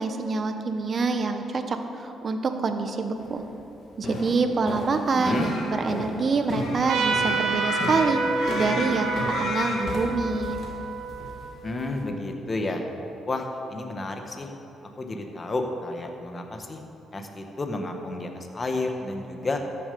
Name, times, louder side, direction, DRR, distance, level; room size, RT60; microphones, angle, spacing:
voice 1, 0.0-3.4 4.0-8.2 8.6-9.1 9.4-10.6, right 4 dB, 45° right, 7 dB, 0.9 m, -26 dB
sound 1, 3.2-3.5 4.0-12.0, left 2 dB, 55° left, 2.1 m, -35 dB
sound 2, 5.0-10.1, left 3 dB, 75° left, 1.6 m, -34 dB
voice 2, 5.1-5.5 11.6-12.8 13.2-14.5 15.0-16.8 17.1-19.6, left 2 dB, 30° left, 4 dB, 1.3 m, -31 dB
Trumpet, 6.9-12.0, right 4 dB, 90° right, 1.0 m, -29 dB
13.5 x 7.0 x 5.4 m, 3.0 s
cardioid pair, 90°, 0 cm